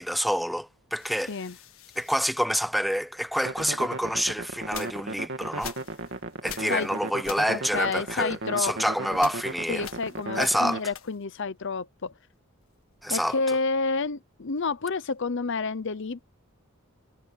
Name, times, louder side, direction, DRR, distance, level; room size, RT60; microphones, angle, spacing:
voice 1, 0.0-1.3 2.0-5.7 6.4-9.9 10.4-10.8 13.0-13.4, equal, ahead, 0.7 m, -27 dB
sound 1, 1.0-3.2 3.8-11.5 11.8-13.4, left 9 dB, 80° left, 1.6 m, -46 dB
sound 2, 3.4-10.8, right 2 dB, 60° right, 2.6 m, -36 dB
voice 2, 7.5-8.7 9.1-9.2 9.7-12.1 13.1-16.2, left 4 dB, 60° left, 0.8 m, -29 dB
head